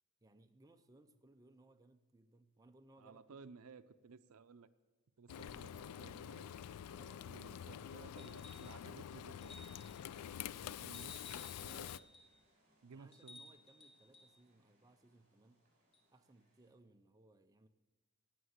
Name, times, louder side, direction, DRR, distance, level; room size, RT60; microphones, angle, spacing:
voice 1, 0.2-3.5 6.9-7.3 7.8-8.7 12.9-15.6 16.1-17.7, right 2 dB, 15° right, 6 dB, 0.6 m, -66 dB
voice 2, 3.0-4.7 5.2-6.5 7.2-9.6 10.5-12.1 12.8-13.4, right 5 dB, 75° right, 13 dB, 0.5 m, -57 dB
Frying (food), 5.3-12.0, left 9 dB, 85° left, 0.3 m, -47 dB
sound 1, 8.2-8.8 9.4-10.0 10.9-12.3 13.1-14.3 15.9-16.0, left 2 dB, 25° left, 1.4 m, -57 dB
sound 2, 9.6-16.7, right 1 dB, 40° right, 4.7 m, -76 dB
18.0 x 6.5 x 8.0 m, 1.3 s
head